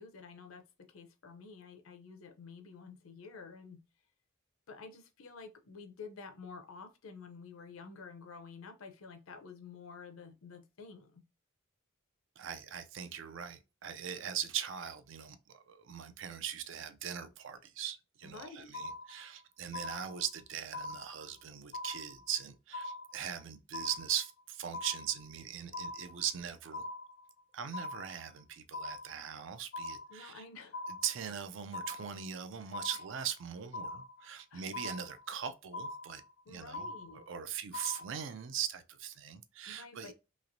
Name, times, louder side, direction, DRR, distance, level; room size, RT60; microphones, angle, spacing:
voice 1, 0.0-3.8 4.7-11.2 18.2-18.7 30.1-30.8 32.6-32.7 34.5-34.7 36.5-37.2 39.7-40.1, left 4 dB, 80° left, 0.6 m, -50 dB
voice 2, 12.4-26.8 27.5-30.4 31.0-36.2 36.5-36.9 37.1-40.1, right 9 dB, 60° right, 0.4 m, -40 dB
sound 1, 18.7-19.4 19.7-20.4 20.7-21.4 21.7-22.4 22.7-23.4 23.7-24.4 24.7-25.4 25.7-26.4 26.7-27.4 27.7-28.4 28.7-29.4 29.7-30.4 30.7-31.4 31.7-32.4 32.7-33.4 33.7-34.4 34.7-35.4 35.7-36.4 36.7-37.4 37.7-38.4, left 2 dB, 40° left, 0.3 m, -42 dB
3.1 x 2.9 x 2.6 m
head